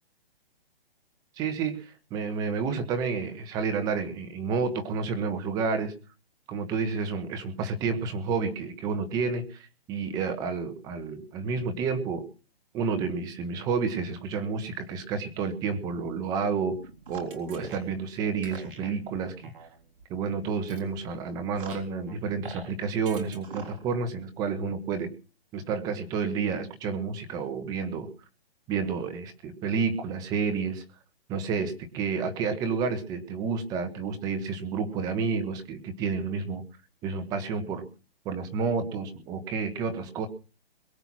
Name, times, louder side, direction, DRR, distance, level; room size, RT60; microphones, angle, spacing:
voice 1, 1.4-5.9 6.5-12.3 12.7-16.8 17.1-19.5 20.1-25.1 25.5-28.1 28.7-30.8 31.3-36.6 37.0-37.8 38.2-40.3, right 5 dB, 10° right, 8 dB, 1.2 m, -30 dB
sound 1, 16.7-22.7 23.1-24.0, right 4 dB, 60° right, 3.7 m, -46 dB
22.0 x 7.8 x 6.1 m, 0.36 s
hypercardioid pair, 170°, 30 cm